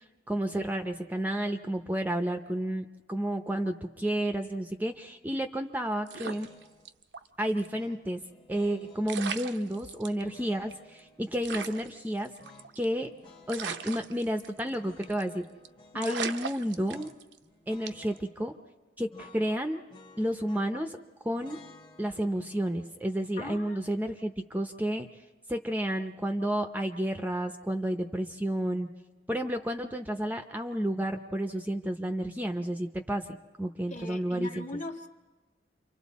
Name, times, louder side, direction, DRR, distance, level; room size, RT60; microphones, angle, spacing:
voice 1, 0.3-6.5 7.4-8.2 8.5-12.3 12.8-13.1 13.5-15.4 15.9-17.1 17.7-18.5 19.0-19.8 20.2-21.0 21.2-21.6 22.0-25.1 25.5-28.9 29.3-34.6, right 1 dB, 10° right, 6 dB, 0.7 m, -31 dB
sound 1, 6.1-7.3 7.6-7.7 8.7-8.8 9.1-10.2 10.7-10.8 11.0-11.1 11.4-13.0 13.5-14.7 15.0-15.3 15.6-15.7 16.0-17.4 17.9-18.2, right 6 dB, 70° right, 0.8 m, -38 dB
sound 2, 6.2-6.9 7.7-9.2 10.2-11.6 12.4-13.9 14.7-16.0 16.8-17.2 17.5-18.3 19.1-20.9 21.4-24.4, left 2 dB, 25° left, 1.2 m, -56 dB
voice 2, 23.4-23.7 33.9-35.1, left 2 dB, 40° left, 5 dB, 1.5 m, -39 dB
28.5 x 24.5 x 4.2 m, 1.3 s
head